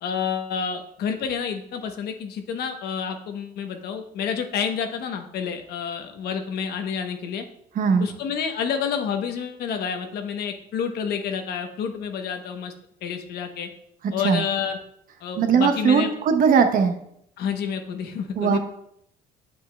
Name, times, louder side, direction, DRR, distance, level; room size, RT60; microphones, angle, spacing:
voice 1, 0.0-7.4 8.0-12.7 13.0-13.7 14.1-14.8 15.2-16.1 17.4-18.6, left 7 dB, 70° left, 6 dB, 0.9 m, -29 dB
voice 2, 7.7-8.1 14.2-14.4 15.4-16.9 18.4-18.6, right 6 dB, 55° right, 7 dB, 0.9 m, -19 dB
8.1 x 7.1 x 2.3 m, 0.72 s
cardioid pair, 110°, 17 cm